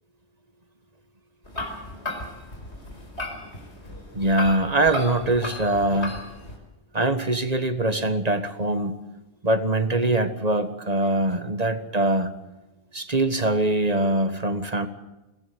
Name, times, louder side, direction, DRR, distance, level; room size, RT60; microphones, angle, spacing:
sound 1, 1.4-6.6, left 1 dB, 85° left, 5.0 m, -35 dB
voice 1, 4.1-6.2 6.9-8.9 9.4-12.3 12.9-14.9, right 2 dB, 35° right, 9 dB, 1.7 m, -23 dB
23.0 x 18.0 x 7.9 m, 1.0 s
omnidirectional pair, 1.1 m